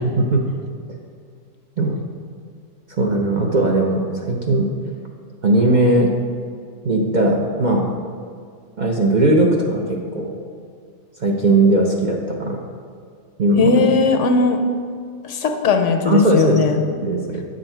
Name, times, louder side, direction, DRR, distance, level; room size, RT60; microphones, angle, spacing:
voice 1, 3.0-4.7 5.4-6.1 6.8-7.8 8.8-10.3 11.2-12.6 13.4-14.0 16.1-16.6 17.0-17.4, right 2 dB, 45° right, -1 dB, 0.6 m, -18 dB
voice 2, 13.6-14.6 15.2-16.8, left 4 dB, 65° left, 5 dB, 1.0 m, -18 dB
8.7 x 6.3 x 4.4 m, 2.2 s
omnidirectional pair, 1.4 m